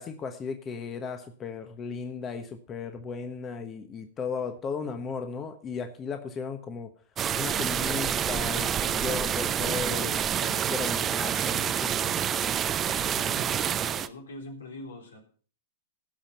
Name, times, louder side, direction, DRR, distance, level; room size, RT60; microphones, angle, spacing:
voice 1, 0.0-6.9 7.4-12.1, left 5 dB, 25° left, 7 dB, 1.2 m, -36 dB
sound 1, 7.2-14.1, right 9 dB, 25° right, 0.7 m, -28 dB
voice 2, 12.8-15.2, left 2 dB, 80° left, 3 dB, 3.5 m, -43 dB
17.0 x 5.8 x 5.6 m, 0.42 s
hypercardioid pair, 105°, 0 cm